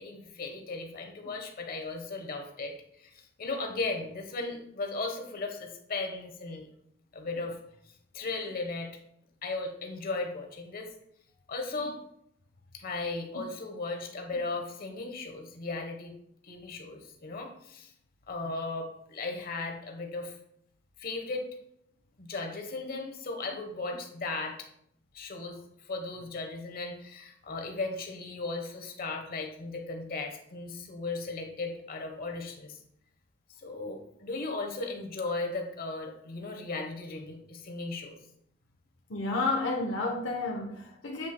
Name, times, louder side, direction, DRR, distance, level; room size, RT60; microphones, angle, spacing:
voice 1, 0.0-2.7 3.0-6.7 7.1-7.6 8.1-8.9 9.4-10.9 11.5-12.0 12.7-16.2 16.4-17.9 18.3-20.3 21.0-21.5 22.2-24.7 25.1-32.8 33.6-38.2, left 3 dB, 50° left, 1.1 m, -36 dB
voice 2, 39.1-41.3, left 3 dB, 70° left, 0.8 m, -31 dB
7.7 x 7.7 x 2.2 m
head